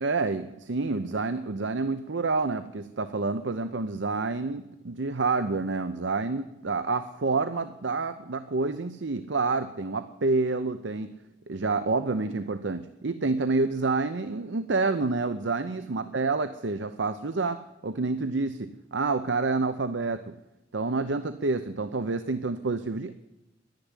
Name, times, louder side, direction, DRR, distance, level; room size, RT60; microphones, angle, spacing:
voice 1, 0.0-11.1 11.5-20.3 20.7-23.2, right 3 dB, 70° right, 11 dB, 0.7 m, -28 dB
11.5 x 10.5 x 9.8 m, 0.96 s
head